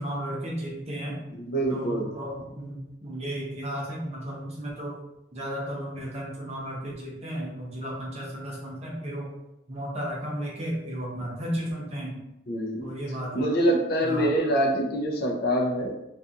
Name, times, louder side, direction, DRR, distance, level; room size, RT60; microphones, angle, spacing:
voice 1, 0.0-1.2 1.7-4.9 5.3-9.3 9.7-12.2 12.8-13.5 14.0-14.3, equal, 35° right, -3 dB, 0.7 m, -34 dB
voice 2, 1.3-2.1 12.5-12.9 13.3-15.9, right 1 dB, 55° left, 2 dB, 0.4 m, -25 dB
2.4 x 2.3 x 2.7 m, 0.91 s
head